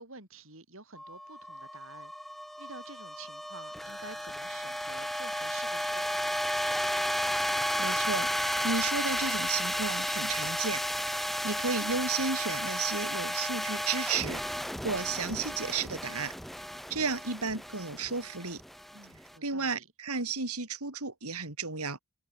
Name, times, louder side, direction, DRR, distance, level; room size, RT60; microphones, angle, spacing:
voice 1, 0.0-2.3 2.6-6.4 18.9-19.9, right 3 dB, 60° right, 5.8 m, -50 dB
sound 1, 1.0-19.3, equal, ahead, 1.1 m, -33 dB
voice 2, 7.8-8.3 8.6-10.8 11.1-14.4 14.8-16.3 16.9-18.6 19.4-22.0, right 4 dB, 85° right, 4.7 m, -33 dB
head